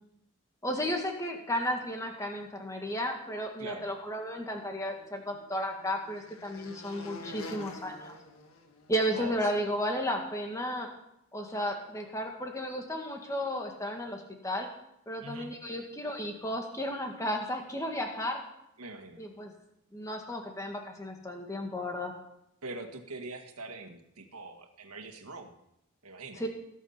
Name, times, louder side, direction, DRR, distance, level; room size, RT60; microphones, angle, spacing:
voice 1, 0.6-8.1 8.9-10.9 11.3-14.7 15.1-18.4 19.2-19.5 19.9-22.1 26.4-26.5, equal, 15° left, 2 dB, 1.8 m, -33 dB
voice 2, 3.6-3.9 9.1-9.4 15.2-15.5 18.8-19.3 22.6-25.5 26.0-26.5, right 3 dB, 90° right, 5 dB, 1.7 m, -43 dB
sound 1, 4.5-9.2, left 2 dB, 75° left, 1.7 m, -47 dB
19.0 x 7.4 x 5.7 m, 0.81 s
head